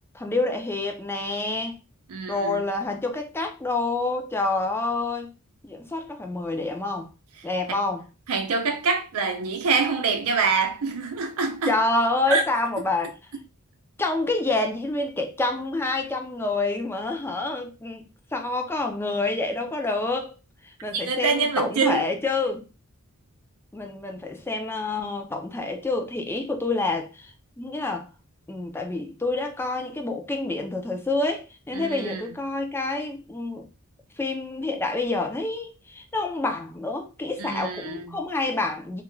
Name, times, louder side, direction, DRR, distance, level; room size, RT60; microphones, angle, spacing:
voice 1, 0.1-1.8 2.3-5.3 5.6-7.1 7.4-8.0 11.7-13.2 14.0-18.0 18.3-20.3 20.6-22.7 23.7-28.1 28.5-33.7 34.2-39.0, left 2 dB, 10° left, 0.4 m, -27 dB
voice 2, 2.1-2.6 8.3-11.8 12.3-12.4 20.9-22.1 31.7-32.2 37.4-38.2, right 4 dB, 90° right, 0.5 m, -25 dB
2.4 x 2.2 x 3.0 m
head